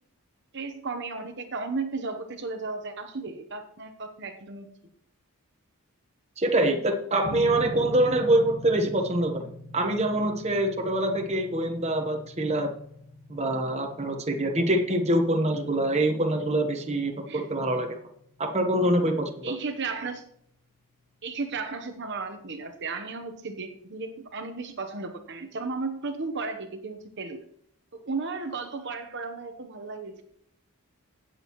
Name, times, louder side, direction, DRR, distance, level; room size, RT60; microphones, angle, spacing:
voice 1, 0.5-4.7 17.3-17.5 19.4-20.2 21.2-27.4 27.9-30.2, right 4 dB, 55° right, 6 dB, 1.0 m, -34 dB
voice 2, 6.4-9.4 9.7-12.7 13.3-18.0 18.4-19.5, right 1 dB, 30° right, 4 dB, 1.1 m, -25 dB
sound 1, 7.2-19.7, equal, 60° left, 1.5 m, -43 dB
16.5 x 7.6 x 3.1 m, 0.69 s
head